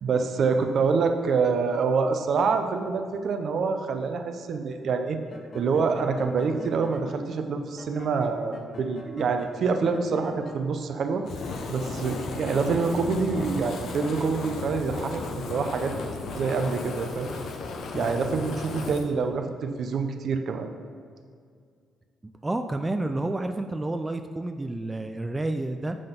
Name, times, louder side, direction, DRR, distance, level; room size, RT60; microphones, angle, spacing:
voice 1, 0.0-5.2 5.5-11.2 11.7-15.9 16.3-17.3 17.9-20.7, right 5 dB, 60° right, 6 dB, 0.6 m, -26 dB
sound 1, 5.2-7.1 7.8-10.6, left 1 dB, 45° left, 1.0 m, -43 dB
Fire, 11.2-19.1, left 3 dB, 65° left, 0.7 m, -35 dB
voice 2, 22.4-26.0, right 2 dB, 15° right, 6 dB, 0.3 m, -29 dB
7.6 x 4.0 x 5.1 m, 2.1 s
cardioid pair, 90°, 0 cm